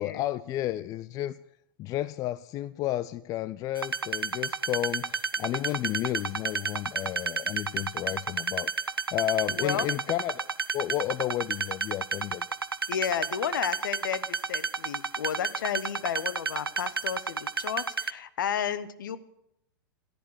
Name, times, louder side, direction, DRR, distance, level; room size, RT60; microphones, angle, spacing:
voice 1, 0.0-1.4 1.8-8.7 9.1-10.5 10.7-12.5, left 14 dB, 30° left, 17 dB, 0.4 m, -32 dB
sound 1, 3.8-18.1, right 5 dB, 85° right, 0.5 m, -31 dB
voice 2, 9.5-9.9 12.9-19.2, left 8 dB, 60° left, 15 dB, 1.0 m, -32 dB
15.0 x 10.5 x 6.3 m, 0.79 s
figure-of-eight pair, 100°, 12 cm